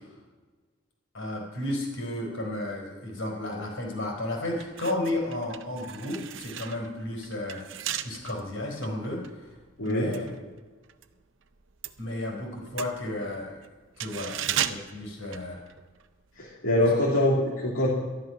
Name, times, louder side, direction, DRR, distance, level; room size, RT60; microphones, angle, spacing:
voice 1, 1.1-7.6 8.0-9.5 9.8-10.3 12.0-13.6 14.0-15.6 16.8-16.9, left 1 dB, 65° left, 0 dB, 4.1 m, -33 dB
sound 1, 3.9-4.1 4.5-11.1 11.4-16.1 16.4-16.5, right 10 dB, 60° right, 0.6 m, -36 dB
voice 2, 9.8-10.1 16.4-17.9, left 1 dB, 85° left, -6 dB, 2.7 m, -24 dB
13.0 x 11.0 x 5.9 m, 1.4 s
head